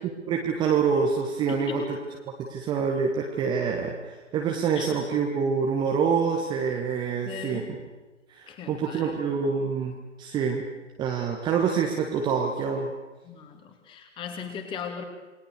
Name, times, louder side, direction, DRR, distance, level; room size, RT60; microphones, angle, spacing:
voice 1, 0.3-2.0 2.5-7.6 8.3-10.7 11.0-12.9, right 6 dB, 10° right, 1 dB, 1.6 m, -26 dB
voice 2, 1.5-1.8 4.7-4.9 7.2-7.8 8.5-9.2 13.2-15.0, left 7 dB, 15° left, 5 dB, 2.9 m, -38 dB
28.0 x 21.5 x 6.8 m, 1.2 s
figure-of-eight pair, 130°, 37 cm